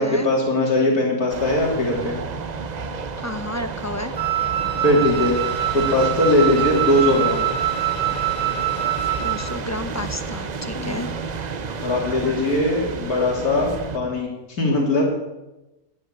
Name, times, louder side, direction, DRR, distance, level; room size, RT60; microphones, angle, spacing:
voice 1, 0.0-2.2 4.8-5.4 5.7-7.5 10.7-11.1 11.8-15.0, left 1 dB, 85° left, -1 dB, 3.6 m, -20 dB
sound 1, 1.3-14.0, right 6 dB, 45° right, 0.5 m, -32 dB
sound 2, 1.7-14.2, right 1 dB, 20° right, 4.3 m, -37 dB
voice 2, 3.2-4.2 9.2-11.1, left 1 dB, 15° left, 9 dB, 0.6 m, -31 dB
Wind instrument woodwind instrument, 4.2-9.5, right 12 dB, 65° right, 2.7 m, -24 dB
13.0 x 10.0 x 8.8 m, 1.0 s
omnidirectional pair, 1.6 m